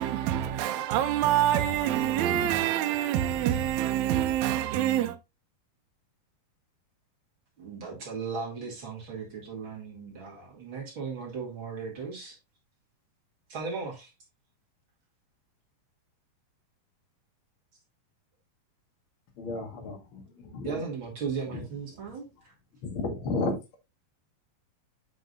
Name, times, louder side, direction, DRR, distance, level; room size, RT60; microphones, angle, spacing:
voice 1, 0.0-5.2, right 11 dB, 80° right, 1.7 m, -26 dB
voice 2, 7.6-12.4 13.5-14.1 20.6-22.5, right 5 dB, 45° right, 2.0 m, -37 dB
voice 3, 19.4-20.8 21.5-21.6 22.8-23.8, left 3 dB, 45° left, 2.0 m, -33 dB
7.9 x 6.0 x 2.6 m
omnidirectional pair, 4.1 m